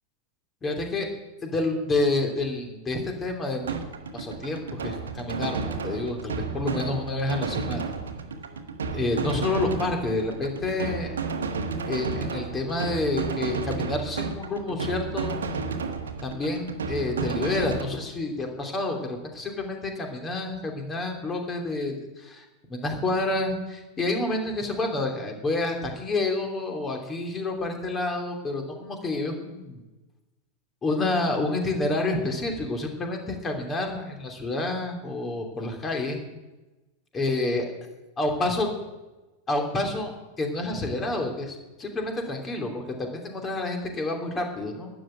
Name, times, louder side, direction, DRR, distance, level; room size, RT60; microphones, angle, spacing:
voice 1, 0.6-1.1 1.4-3.8 4.1-7.9 8.9-11.2 11.9-15.3 16.2-29.8 30.8-36.2 37.1-37.6 38.2-38.7 39.5-40.1 40.4-44.9, left 2 dB, 20° left, 3 dB, 3.0 m, -29 dB
sound 1, 3.6-17.8, right 4 dB, 65° right, 1.3 m, -32 dB
12.5 x 9.0 x 9.0 m, 1.1 s
figure-of-eight pair, 90°, 0 cm